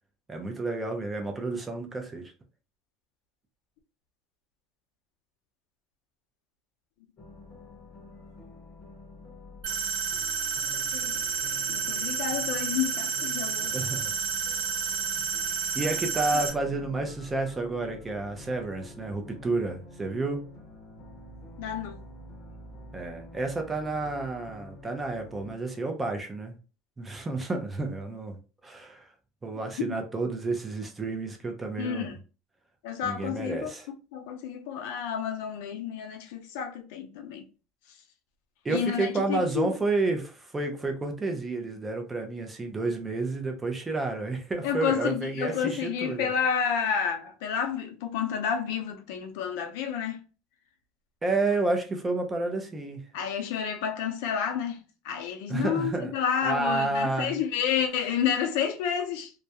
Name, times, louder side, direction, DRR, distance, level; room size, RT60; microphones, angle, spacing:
voice 1, 0.3-2.3 13.7-14.1 15.7-20.4 22.9-26.5 27.0-28.4 28.6-29.1 29.4-32.2 33.0-33.9 38.6-46.3 51.2-53.0 55.5-56.1 56.4-57.4, right 3 dB, 15° right, 0.5 m, -30 dB
sound 1, 7.2-25.5, left 2 dB, 35° left, 0.7 m, -48 dB
sound 2, 9.6-16.5, right 6 dB, 75° right, 0.9 m, -30 dB
voice 2, 10.7-11.2 11.7-13.8 21.6-22.0 29.9-30.0 31.8-32.2 32.8-33.7 34.1-37.4 38.7-39.7 44.6-50.2 53.1-59.3, left 8 dB, 80° left, 0.6 m, -30 dB
2.3 x 2.1 x 2.8 m
cardioid pair, 160°, 0 cm